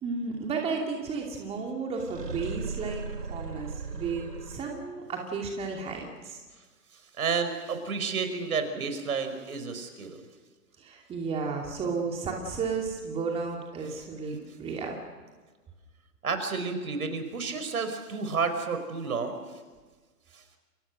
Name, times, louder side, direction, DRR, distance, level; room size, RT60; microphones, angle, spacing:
voice 1, 0.0-6.4 10.8-15.0, right 4 dB, 10° right, 1 dB, 2.7 m, -33 dB
sound 1, 2.0-5.0, right 4 dB, 80° right, 2.1 m, -38 dB
voice 2, 6.9-10.2 16.2-19.6 20.3-20.4, right 5 dB, 65° right, 8 dB, 5.0 m, -31 dB
29.5 x 24.0 x 6.5 m, 1.3 s
figure-of-eight pair, 135°, 47 cm